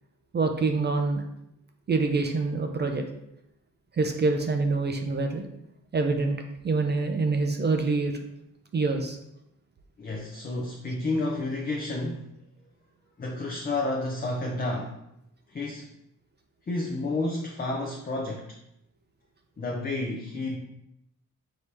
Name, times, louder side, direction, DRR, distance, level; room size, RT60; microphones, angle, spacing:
voice 1, 0.3-1.2 1.9-3.0 4.0-5.5 5.9-6.4 6.6-8.1 8.7-9.2, right 3 dB, 35° right, 4 dB, 0.4 m, -25 dB
voice 2, 10.0-12.3 13.2-14.9 15.5-15.9 16.7-18.6 19.6-20.6, left 2 dB, 30° left, 0 dB, 0.5 m, -30 dB
4.6 x 2.8 x 3.3 m, 0.81 s
cardioid pair, 95°, 33 cm